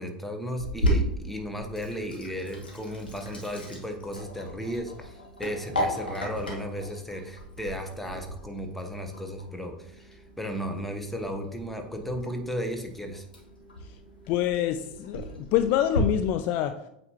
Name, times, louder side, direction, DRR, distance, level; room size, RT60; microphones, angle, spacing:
voice 1, 0.0-13.3, equal, 5° left, 4 dB, 0.9 m, -35 dB
Sink (filling or washing), 0.6-16.0, equal, 90° left, 1.3 m, -35 dB
voice 2, 14.3-16.7, left 11 dB, 45° left, 9 dB, 0.3 m, -26 dB
8.1 x 4.2 x 2.9 m, 0.80 s
figure-of-eight pair, 85°, 5 cm